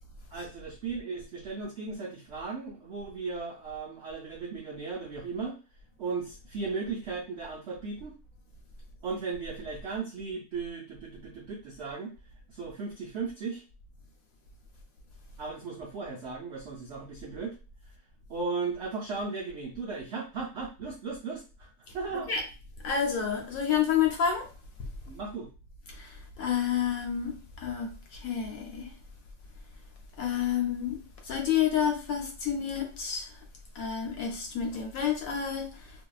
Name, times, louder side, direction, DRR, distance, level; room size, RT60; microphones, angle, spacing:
voice 1, 0.3-5.6 6.0-8.2 9.0-12.1 12.5-13.6 15.4-17.6 17.8-17.9 18.3-22.3 25.0-25.5, right 4 dB, 70° right, 0.6 m, -36 dB
voice 2, 22.8-24.5 24.8-24.9 25.9-28.9 30.2-31.0 31.3-33.3 33.8-35.8, left 8 dB, 70° left, 0.9 m, -29 dB
2.6 x 2.2 x 2.3 m
omnidirectional pair, 1.7 m